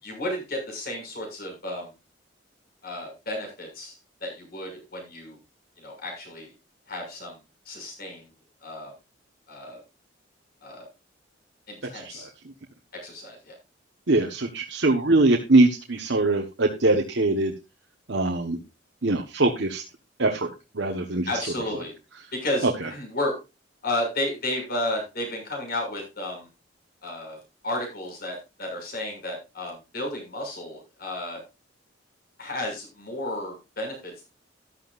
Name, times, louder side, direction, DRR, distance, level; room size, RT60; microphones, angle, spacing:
voice 1, 0.0-1.9 2.8-5.4 5.8-6.5 6.9-7.4 7.6-8.3 8.6-8.9 9.5-9.8 10.6-10.9 11.7-12.3 12.9-13.6 21.3-21.9 22.3-23.4 23.8-26.5 27.0-31.4 32.4-34.3, left 1 dB, 55° left, 1 dB, 6.7 m, -32 dB
voice 2, 11.9-12.3 14.1-17.5 18.1-18.6 19.0-19.8 20.2-21.4 22.6-22.9, right 2 dB, 70° right, 1 dB, 1.3 m, -22 dB
13.5 x 11.5 x 2.6 m, 0.26 s
head